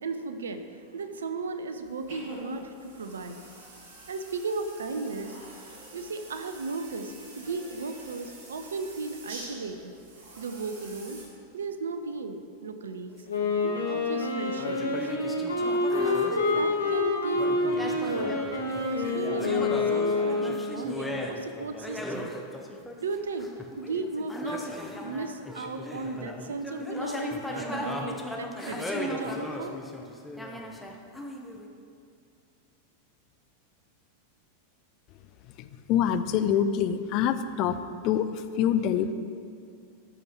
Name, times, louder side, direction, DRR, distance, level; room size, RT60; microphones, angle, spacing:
voice 1, 0.0-3.4 4.1-5.4 5.6-9.9 10.4-11.2 11.5-13.1 13.6-15.2 16.0-18.4 18.6-22.3 23.0-23.5 23.8-29.7, right 3 dB, 65° right, 8 dB, 0.6 m, -35 dB
sound 1, 1.8-11.3, right 2 dB, 50° right, 1.8 m, -46 dB
sound 2, 13.1-14.0 14.6-17.0 17.3-31.7, left 1 dB, 5° left, 0.8 m, -37 dB
Wind instrument woodwind instrument, 13.3-20.9, left 3 dB, 70° left, 1.4 m, -27 dB
voice 2, 35.9-37.8 38.0-39.1, left 9 dB, 40° left, 10 dB, 0.5 m, -25 dB
13.0 x 5.0 x 4.6 m, 2.3 s
figure-of-eight pair, 90°, 0 cm